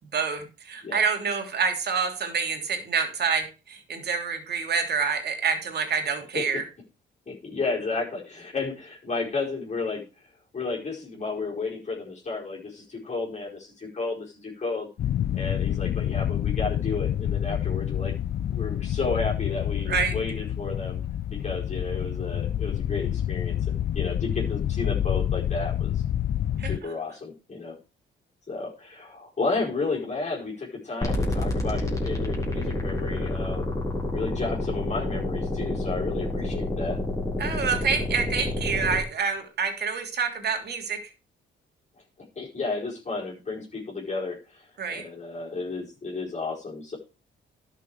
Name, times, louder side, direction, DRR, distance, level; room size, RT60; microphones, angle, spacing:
voice 1, 0.1-6.6 19.9-20.1 26.6-26.7 37.4-41.0 44.8-45.0, right 5 dB, 55° right, 5 dB, 3.1 m, -27 dB
voice 2, 0.8-1.1 6.3-6.6 7.3-10.0 10.5-14.9 15.3-18.1 18.5-21.0 21.3-26.0 26.6-27.8 28.5-33.7 34.1-37.0 41.9-42.0 42.3-47.0, left 3 dB, 35° left, -4 dB, 4.8 m, -32 dB
sound 1, 15.0-26.8, left 10 dB, 55° left, 0.6 m, -28 dB
sound 2, 31.0-39.0, left 1 dB, 15° left, 4.2 m, -28 dB
11.5 x 6.9 x 4.8 m, 0.32 s
cardioid pair, 90°, 20 cm